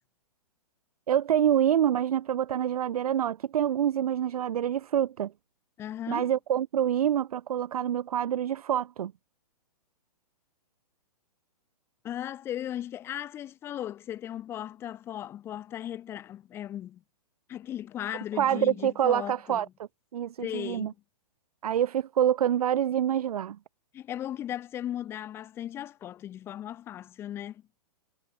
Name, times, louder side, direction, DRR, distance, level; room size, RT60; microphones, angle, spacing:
voice 1, 1.1-5.3 6.1-9.1 18.4-19.7 20.1-20.9 21.6-23.6, right 10 dB, 75° right, 0.8 m, -26 dB
voice 2, 5.8-6.3 12.0-17.0 17.5-19.7 20.4-21.0 23.9-27.6, left 11 dB, 10° left, 0.4 m, -37 dB
hypercardioid pair, 140°, 20 cm